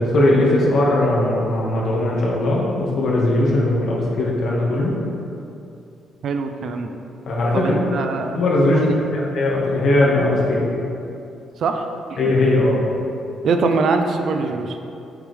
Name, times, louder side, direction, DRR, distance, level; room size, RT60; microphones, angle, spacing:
voice 1, 0.0-4.9 7.3-8.0 8.3-10.8 12.2-12.9, left 1 dB, 65° left, -4 dB, 2.1 m, -19 dB
voice 2, 6.2-6.9 7.5-8.4 8.7-9.0 11.6-11.9 12.3-12.4 13.4-14.8, right 4 dB, 65° right, 5 dB, 0.7 m, -22 dB
9.9 x 7.3 x 3.5 m, 2.7 s
cardioid pair, 90°, 0 cm